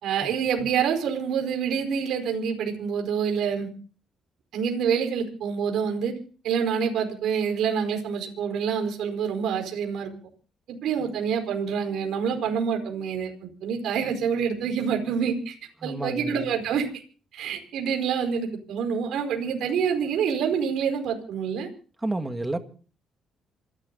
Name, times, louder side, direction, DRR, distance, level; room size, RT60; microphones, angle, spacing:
voice 1, 0.0-3.7 4.5-6.1 6.4-10.1 10.7-15.6 15.8-16.9 17.3-21.7, right 7 dB, 80° right, 4.8 m, -27 dB
voice 2, 15.8-16.5 22.0-22.6, right 2 dB, 15° right, 2.1 m, -30 dB
27.5 x 12.5 x 4.1 m
cardioid pair, 90°, 0 cm